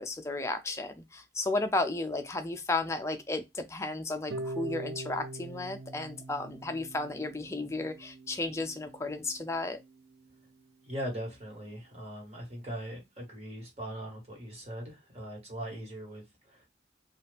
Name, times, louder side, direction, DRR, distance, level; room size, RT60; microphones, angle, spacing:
voice 1, 0.0-9.8, left 2 dB, 15° left, 0.4 m, -33 dB
Harp, 4.3-10.4, right 1 dB, 55° right, 0.5 m, -43 dB
voice 2, 10.8-16.7, equal, 35° right, 1.4 m, -40 dB
2.7 x 2.4 x 3.3 m
head